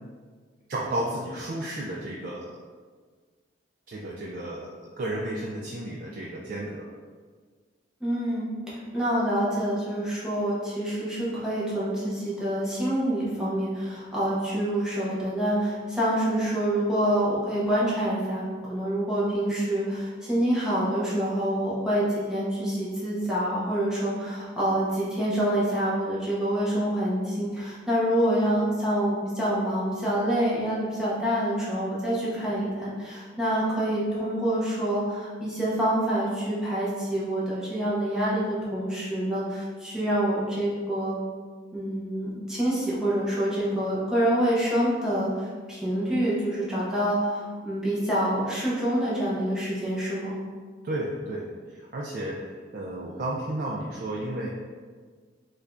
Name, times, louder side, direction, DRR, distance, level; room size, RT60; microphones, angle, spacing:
voice 1, 0.7-2.4 3.9-6.9 50.8-52.4 52.7-54.5, right 1 dB, 50° right, -4 dB, 0.3 m, -32 dB
voice 2, 8.0-41.2 41.7-50.3, right 1 dB, 5° right, -9 dB, 0.6 m, -26 dB
4.6 x 2.3 x 2.5 m, 1.6 s
head